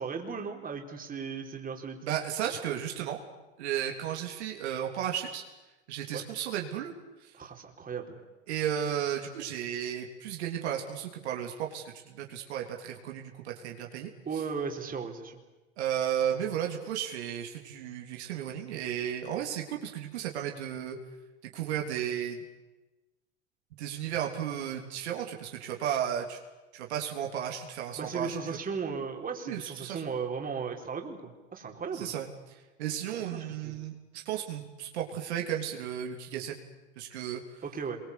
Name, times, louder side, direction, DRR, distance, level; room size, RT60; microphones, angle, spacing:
voice 1, 0.0-2.0 6.1-6.2 7.4-8.2 14.2-15.4 28.0-32.1 33.1-33.8 37.6-38.0, right 5 dB, 25° right, 2 dB, 4.3 m, -36 dB
voice 2, 2.0-3.2 3.6-5.4 5.9-6.9 7.2-7.3 8.5-14.1 15.8-21.0 21.4-22.4 23.8-26.4 26.7-28.6 29.5-30.1 31.9-32.3 32.8-36.7 37.0-37.6, right 9 dB, 70° right, 1 dB, 3.4 m, -34 dB
27.0 x 23.5 x 8.4 m, 1.1 s
hypercardioid pair, 85°, 34 cm